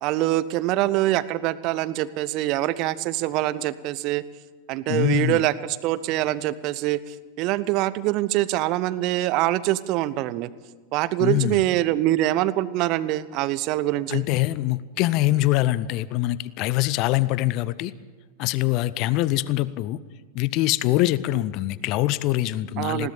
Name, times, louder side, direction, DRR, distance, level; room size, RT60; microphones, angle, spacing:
voice 1, 0.0-4.2 4.7-10.5 10.9-14.2 22.8-23.1, right 15 dB, 40° right, 17 dB, 0.9 m, -24 dB
voice 2, 4.9-5.5 11.2-11.6 14.1-17.9 18.4-20.0 20.3-23.1, left 16 dB, 40° left, 18 dB, 0.7 m, -24 dB
20.5 x 17.5 x 7.2 m, 1.4 s
figure-of-eight pair, 90°, 0 cm